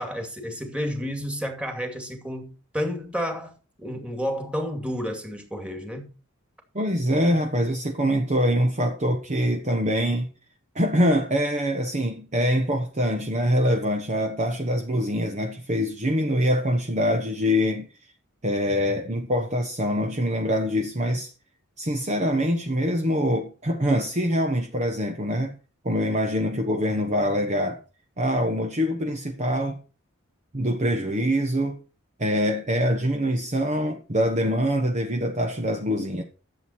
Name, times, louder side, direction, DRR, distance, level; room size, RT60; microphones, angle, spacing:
voice 1, 0.0-3.5 3.8-6.1, equal, 5° right, 2.4 m, -31 dB
voice 2, 6.7-10.3 10.7-17.9 18.4-21.3 21.8-25.6 25.8-27.8 28.2-29.8 30.5-31.8 32.2-36.2, equal, 35° right, 1.2 m, -24 dB
12.0 x 7.9 x 4.5 m
head